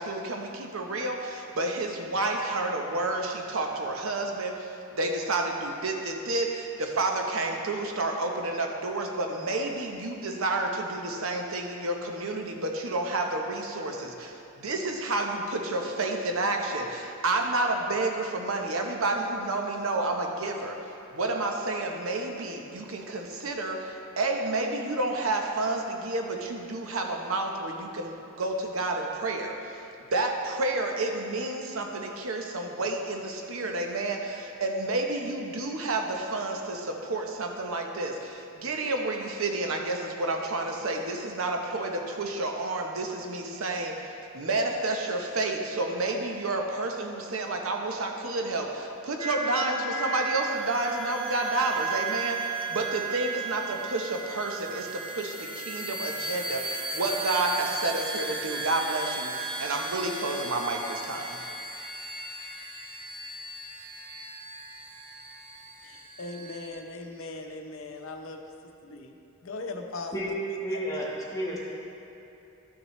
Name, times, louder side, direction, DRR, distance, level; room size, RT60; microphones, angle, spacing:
voice 1, 0.0-20.8 21.1-29.7 30.1-44.0 44.3-61.4, right 2 dB, 70° right, 3 dB, 0.9 m, -30 dB
sound 1, 49.2-66.7, right 3 dB, 25° right, 0.8 m, -36 dB
voice 2, 65.8-69.2 69.4-70.3 70.7-71.0, left 3 dB, 65° left, 3 dB, 0.7 m, -39 dB
voice 3, 70.6-71.1 71.3-71.7, equal, 15° left, -5 dB, 1.3 m, -31 dB
12.5 x 6.0 x 3.2 m, 3.0 s
head